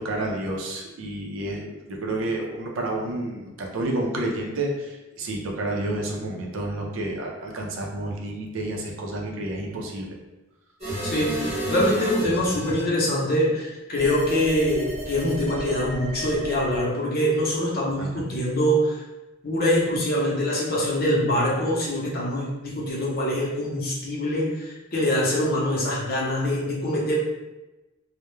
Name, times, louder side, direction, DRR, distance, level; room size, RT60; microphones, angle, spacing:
voice 1, 0.0-10.1 18.0-18.1, right 1 dB, 70° right, 0 dB, 0.5 m, -30 dB
sound 1, 10.8-12.8 14.0-16.8, right 1 dB, 30° right, 0.9 m, -32 dB
voice 2, 11.0-19.0 19.4-27.2, equal, 45° left, -4 dB, 0.6 m, -24 dB
2.2 x 2.0 x 3.0 m, 1.1 s
head